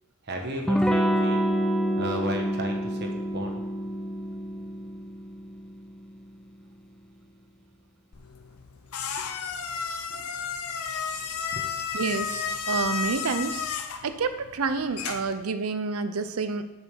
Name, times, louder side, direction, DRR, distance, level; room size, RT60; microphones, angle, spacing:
voice 1, 0.2-1.6 2.0-3.6 9.2-9.3 10.1-10.2 11.5-11.6, right 1 dB, 50° right, 2 dB, 1.3 m, -34 dB
Electric guitar / Strum, 0.7-6.0, equal, 5° left, 0.5 m, -27 dB
sound 1, 8.1-15.4, left 6 dB, 75° left, 0.7 m, -33 dB
voice 2, 11.9-12.4 12.7-13.6 14.0-16.6, right 4 dB, 70° right, 11 dB, 0.6 m, -28 dB
7.2 x 5.3 x 6.3 m, 1.0 s
head